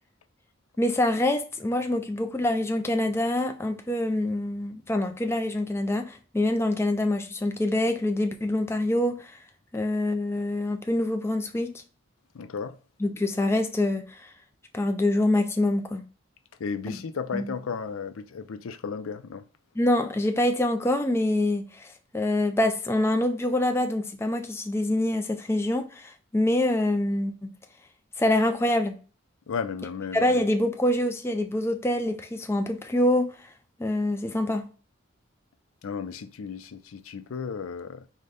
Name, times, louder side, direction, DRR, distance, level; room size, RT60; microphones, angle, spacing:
voice 1, 0.8-9.4 9.7-11.8 13.0-14.3 14.7-16.0 16.9-17.0 17.3-17.5 19.8-27.5 28.2-28.9 30.1-33.4 33.8-34.6, left 1 dB, 10° left, 0.4 m, -25 dB
voice 2, 12.3-12.8 16.6-19.4 29.5-30.4 35.8-38.0, left 5 dB, 85° left, 0.5 m, -34 dB
5.0 x 2.2 x 3.9 m
head